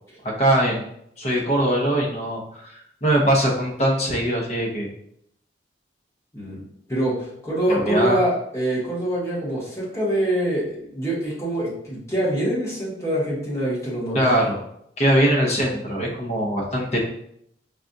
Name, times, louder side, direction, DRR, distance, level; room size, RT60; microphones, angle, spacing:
voice 1, 0.2-0.8 1.2-4.9 7.7-8.2 14.1-14.6 15.0-17.0, right 1 dB, 35° left, -2 dB, 0.8 m, -21 dB
voice 2, 6.9-14.3, right 1 dB, 15° left, -7 dB, 1.2 m, -25 dB
5.0 x 2.3 x 2.6 m, 0.71 s
head